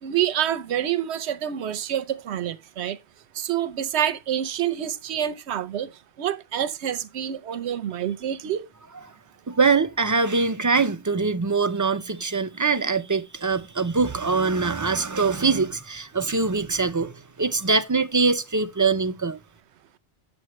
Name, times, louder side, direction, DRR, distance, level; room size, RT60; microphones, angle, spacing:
voice 1, 0.0-3.0 3.3-5.9 6.2-8.7, right 10 dB, 80° right, 1.0 m, -27 dB
voice 2, 9.5-19.4, right 4 dB, 30° right, 0.3 m, -23 dB
8.0 x 7.2 x 3.0 m
omnidirectional pair, 1.1 m